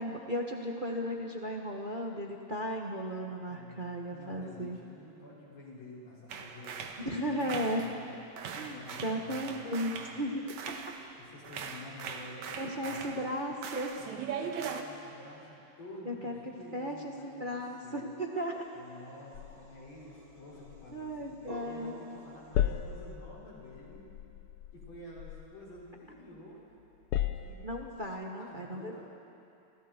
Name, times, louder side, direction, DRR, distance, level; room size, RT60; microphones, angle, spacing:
voice 1, 0.0-4.8 7.0-7.9 8.5-10.4 12.5-14.0 16.0-16.4 16.7-18.6 20.9-22.0 27.6-29.0, equal, 45° right, 0 dB, 0.6 m, -35 dB
voice 2, 3.5-3.8 4.1-8.1 8.5-10.2 11.2-13.4 14.0-18.1 18.7-24.1 24.7-26.6 27.3-27.6 28.4-29.0, left 1 dB, 55° left, -6 dB, 6.9 m, -50 dB
sound 1, 6.3-8.1 8.4-11.2 11.4-14.8, right 6 dB, 70° right, 2.5 m, -41 dB
sound 2, 18.1-23.1, right 1 dB, 20° right, 1.1 m, -53 dB
sound 3, 19.3-21.9 22.2-26.4 26.8-28.1, left 10 dB, 80° left, 1.2 m, -37 dB
30.0 x 28.0 x 4.6 m, 2.7 s
omnidirectional pair, 3.6 m